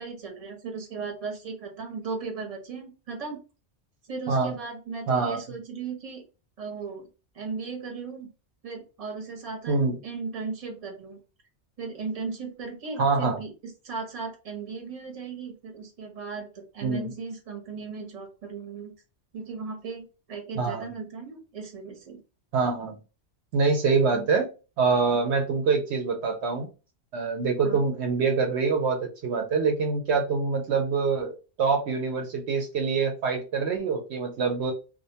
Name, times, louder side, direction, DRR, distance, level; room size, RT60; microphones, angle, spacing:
voice 1, 0.0-3.4 4.1-6.2 6.6-7.1 7.3-8.3 8.6-9.8 10.0-11.2 11.8-18.9 19.3-22.2 24.1-24.2 27.6-27.8, right 4 dB, 35° right, 3 dB, 0.8 m, -36 dB
voice 2, 5.1-5.4 9.7-10.0 13.0-13.4 16.8-17.1 20.6-20.8 22.5-23.0 23.5-24.5 24.8-26.7 27.1-34.7, right 4 dB, 70° right, 3 dB, 0.8 m, -25 dB
2.5 x 2.1 x 2.7 m, 0.31 s
omnidirectional pair, 1.2 m